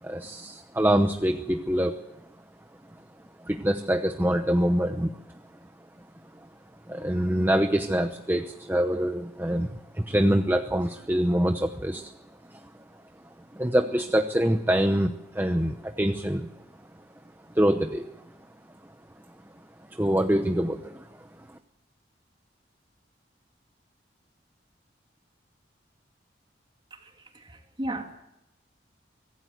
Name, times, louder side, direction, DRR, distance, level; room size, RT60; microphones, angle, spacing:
voice 1, 0.0-2.0 3.4-5.4 6.9-12.1 12.5-12.7 13.5-16.5 17.5-18.1 19.9-21.1 21.5-21.6, equal, 10° right, 0.9 m, -25 dB
voice 2, 26.9-28.2, right 1 dB, 25° right, 3.0 m, -36 dB
24.5 x 17.0 x 8.1 m
head